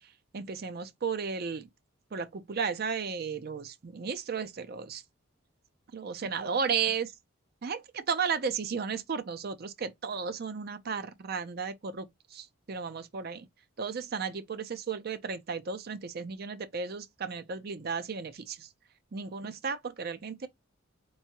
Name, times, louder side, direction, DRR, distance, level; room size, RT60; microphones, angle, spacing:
voice 1, 0.0-1.7 2.1-5.0 5.9-7.1 7.6-13.5 13.8-18.7 19.1-20.5, right 5 dB, 45° right, 0.4 m, -34 dB
4.6 x 2.7 x 2.8 m
head